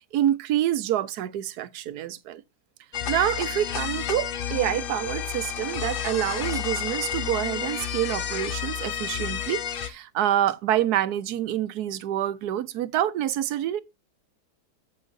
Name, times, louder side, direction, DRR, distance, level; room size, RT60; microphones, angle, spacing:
voice 1, 0.1-2.4 3.1-13.8, right 12 dB, 75° right, 1.2 m, -27 dB
sound 1, 2.9-9.9, left 9 dB, 60° left, 0.5 m, -31 dB
14.0 x 5.6 x 2.6 m
omnidirectional pair, 1.7 m